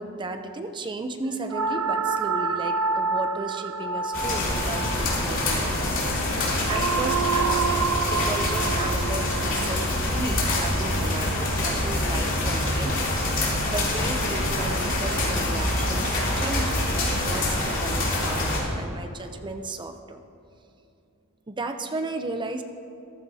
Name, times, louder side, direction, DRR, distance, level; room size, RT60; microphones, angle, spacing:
voice 1, 0.0-6.0 6.4-7.8 8.1-13.0 13.4-20.2 21.5-22.6, right 2 dB, 20° right, 7 dB, 0.5 m, -34 dB
sound 1, 1.5-11.7, right 5 dB, 80° right, 0.5 m, -29 dB
sound 2, 4.1-18.6, left 1 dB, 60° left, 3.1 m, -25 dB
14.0 x 14.0 x 2.8 m, 2.6 s
head